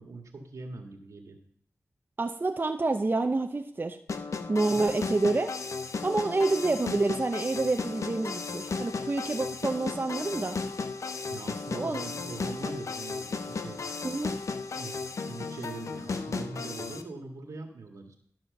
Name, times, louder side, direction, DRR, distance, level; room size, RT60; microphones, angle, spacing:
voice 1, 0.0-1.4 4.7-4.8 11.3-13.8 14.7-18.2, right 3 dB, 80° right, 3 dB, 1.8 m, -42 dB
voice 2, 2.2-4.0 4.5-5.5 6.0-10.6 11.7-12.1 14.0-14.3, right 3 dB, 40° right, 5 dB, 0.7 m, -28 dB
sound 1, 4.1-17.0, left 4 dB, 70° left, 0.8 m, -35 dB
12.5 x 4.4 x 6.5 m, 0.66 s
cardioid pair, 45°, 5 cm